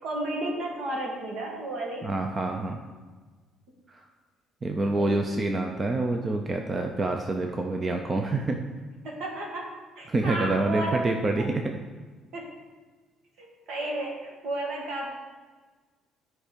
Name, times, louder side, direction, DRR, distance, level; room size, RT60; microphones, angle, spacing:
voice 1, 0.0-2.1 5.0-5.1 9.0-11.0 12.3-12.5 13.4-15.1, right 1 dB, 65° right, 0 dB, 2.0 m, -33 dB
voice 2, 2.0-2.8 3.9-4.1 4.6-8.6 10.1-11.6, right 2 dB, 20° right, 3 dB, 0.5 m, -27 dB
11.5 x 4.6 x 5.2 m, 1.4 s
cardioid pair, 160°, 0 cm